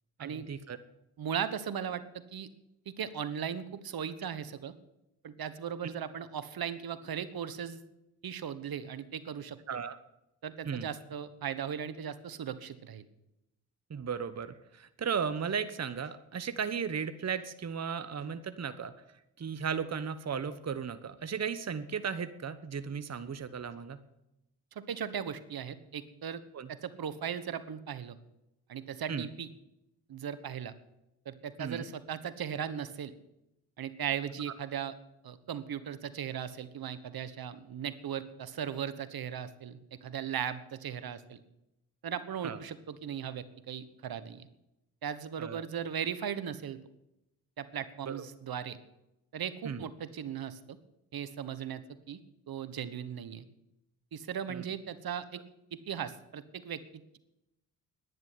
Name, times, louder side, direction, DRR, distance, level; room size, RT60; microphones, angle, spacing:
voice 1, 0.2-0.8 9.7-10.0 10.6-10.9 13.9-18.9 19.4-24.0 26.5-26.7 29.1-29.3 31.6-31.8 42.4-42.6 45.4-45.6 48.0-48.2 49.6-49.8 54.5-54.6, right 6 dB, 40° right, 12 dB, 1.2 m, -35 dB
voice 2, 1.2-2.5 2.8-4.7 5.2-7.8 8.2-9.6 10.4-13.0 24.7-26.4 26.7-28.2 28.7-29.5 30.1-30.7 31.2-33.1 33.8-34.9 35.2-41.4 42.0-44.5 45.0-46.8 47.6-48.8 49.3-50.8 51.1-52.2 52.5-53.4 54.1-55.4 55.7-56.8, right 8 dB, 60° right, 14 dB, 1.4 m, -37 dB
11.0 x 10.0 x 9.4 m, 0.89 s
hypercardioid pair, 45°, 41 cm